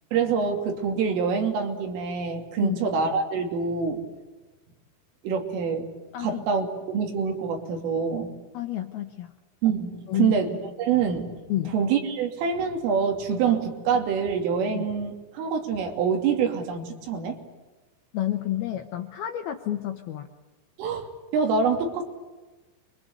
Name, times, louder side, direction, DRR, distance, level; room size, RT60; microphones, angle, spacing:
voice 1, 0.1-4.0 5.2-5.9 6.2-8.3 9.6-11.3 11.7-17.4 20.8-21.1 21.3-22.0, right 6 dB, 80° right, 3 dB, 5.4 m, -26 dB
voice 2, 6.1-6.4 8.5-9.3 10.1-10.4 11.5-11.7 14.7-14.9 18.1-20.3, left 12 dB, 75° left, 6 dB, 2.3 m, -30 dB
29.5 x 24.0 x 8.4 m, 1.2 s
omnidirectional pair, 5.7 m